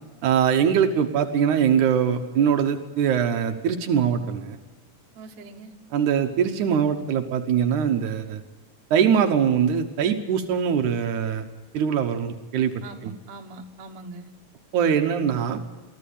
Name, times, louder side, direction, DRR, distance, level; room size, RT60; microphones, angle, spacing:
voice 1, 0.2-4.6 5.9-8.4 8.9-11.4 11.7-12.7 13.0-13.1 14.7-15.6, right 8 dB, 85° right, 5 dB, 2.5 m, -22 dB
voice 2, 5.2-5.7 12.8-14.3, right 2 dB, 65° right, 4 dB, 2.6 m, -42 dB
24.0 x 15.0 x 8.5 m, 1.2 s
omnidirectional pair, 3.4 m